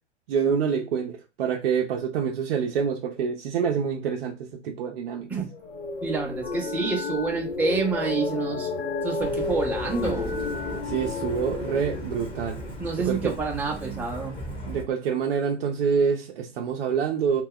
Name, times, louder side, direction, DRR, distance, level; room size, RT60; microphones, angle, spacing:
voice 1, 0.3-4.3 4.6-5.5 10.8-12.6 13.0-13.3 14.7-17.4, right 6 dB, 55° right, 0.5 m, -26 dB
sound 1, 5.5-13.6, left 3 dB, 85° left, 0.7 m, -33 dB
voice 2, 6.0-8.7 9.0-10.3 12.8-14.4, right 4 dB, 5° right, 0.5 m, -28 dB
sound 2, 6.4-12.0, left 4 dB, 55° left, 1.0 m, -36 dB
Truck, 9.2-14.8, equal, 15° left, 0.9 m, -37 dB
2.2 x 2.1 x 3.6 m
figure-of-eight pair, 110°, 35 cm